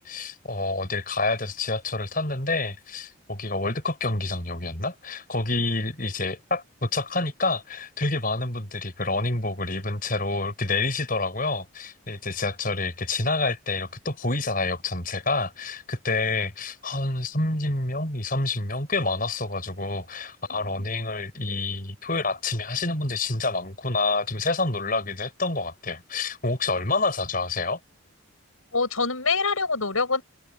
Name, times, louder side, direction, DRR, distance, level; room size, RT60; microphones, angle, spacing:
voice 1, 0.0-27.8, left 3 dB, 40° left, 5.9 m, -28 dB
voice 2, 28.7-30.2, left 4 dB, 90° left, 7.2 m, -25 dB
open air
head